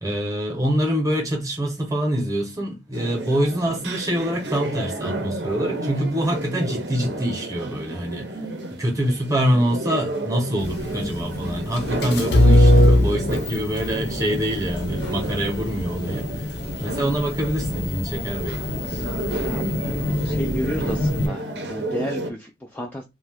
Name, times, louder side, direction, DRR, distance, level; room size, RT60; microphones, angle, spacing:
voice 1, 0.0-8.3 8.8-16.5 16.8-18.8, equal, 20° right, 0.8 m, -25 dB
sound 1, 2.9-22.3, right 1 dB, 65° right, 0.6 m, -32 dB
sound 2, 10.6-21.3, left 1 dB, 60° left, 0.6 m, -23 dB
sound 3, 11.8-12.2 13.3-13.7 14.1-14.2 14.8-15.4 16.2-16.9 17.6-18.1 19.0-19.5 20.0-20.1 20.4-20.9, left 2 dB, 85° left, 1.0 m, -41 dB
voice 2, 19.4-23.0, equal, 10° left, 0.3 m, -32 dB
2.6 x 2.2 x 3.4 m
head